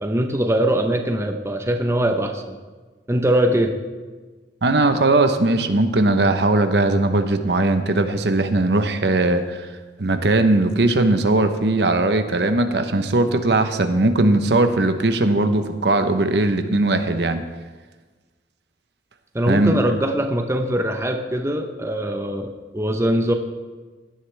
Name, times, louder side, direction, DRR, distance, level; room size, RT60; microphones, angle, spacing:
voice 1, 0.0-2.6 3.1-3.7 19.3-23.3, right 1 dB, 15° right, 4 dB, 0.8 m, -22 dB
voice 2, 4.6-9.7 10.0-17.4 19.5-19.7, right 2 dB, 65° right, 8 dB, 0.9 m, -19 dB
16.0 x 11.5 x 3.3 m, 1.3 s
head